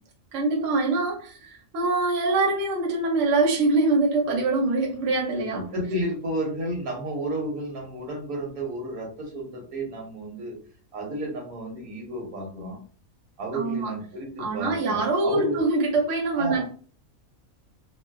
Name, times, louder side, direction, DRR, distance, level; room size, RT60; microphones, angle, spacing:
voice 1, 0.3-5.7 13.5-13.9 14.4-16.6, right 3 dB, 65° right, 0 dB, 1.0 m, -24 dB
voice 2, 5.5-10.6 10.9-12.8 13.4-15.6 16.4-16.6, right 1 dB, 80° right, 0 dB, 1.4 m, -32 dB
3.0 x 2.0 x 2.3 m, 0.41 s
omnidirectional pair, 1.5 m